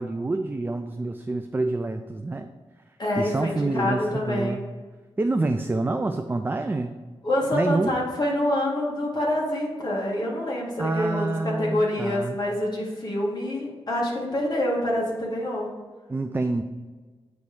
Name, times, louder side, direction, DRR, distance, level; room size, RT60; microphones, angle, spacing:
voice 1, 0.0-2.5 3.2-4.6 5.2-6.9 7.5-8.0 10.8-12.4 16.1-16.6, right 2 dB, 20° right, 6 dB, 0.3 m, -27 dB
voice 2, 3.0-4.6 7.2-15.7, left 1 dB, 40° left, -4 dB, 2.0 m, -26 dB
8.1 x 3.2 x 5.0 m, 1.4 s
wide cardioid pair, 125°, 11 cm